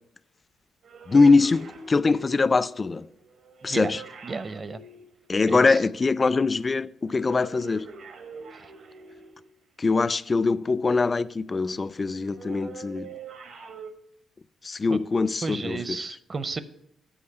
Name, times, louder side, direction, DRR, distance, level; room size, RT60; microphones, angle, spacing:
sound 1, 0.8-5.9 7.1-9.7 12.1-13.9, right 4 dB, 65° right, 1.1 m, -44 dB
voice 1, 1.1-3.1 3.6-4.0 5.3-7.9 9.8-13.1 14.6-16.0, left 4 dB, 30° left, 0.3 m, -23 dB
voice 2, 3.6-3.9 4.2-4.8 5.4-5.8 14.9-15.0 15.4-16.6, right 4 dB, 35° right, 0.6 m, -32 dB
8.7 x 4.7 x 6.5 m
cardioid pair, 90°, 0 cm